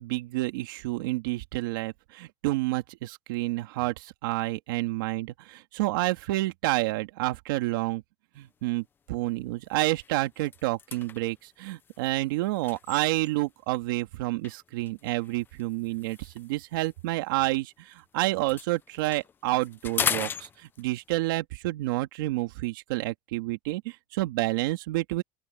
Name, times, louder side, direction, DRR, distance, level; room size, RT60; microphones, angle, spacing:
voice 1, 0.0-8.0 8.4-25.2, right 19 dB, 85° right, 2.3 m, -29 dB
sound 1, 8.5-8.7 9.2-9.3 9.6-13.6 14.4-18.0 18.3-21.1, left 7 dB, 20° left, 0.7 m, -37 dB
open air
cardioid pair, 155°, 11 cm